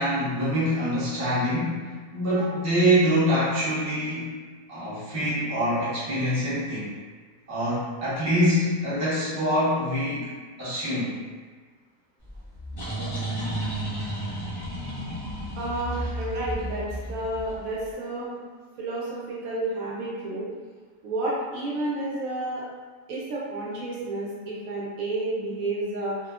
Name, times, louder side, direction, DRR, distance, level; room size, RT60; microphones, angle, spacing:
voice 1, 0.0-4.4 4.7-6.9 7.5-10.3 10.6-11.1, equal, 15° right, -11 dB, 0.6 m, -25 dB
sound 1, 12.3-17.8, right 1 dB, 30° left, 0.4 m, -32 dB
voice 2, 15.6-18.4 18.8-20.5 21.0-22.6 23.1-26.2, right 2 dB, 75° right, -6 dB, 1.0 m, -31 dB
2.7 x 2.1 x 2.3 m, 1.4 s
omnidirectional pair, 1.5 m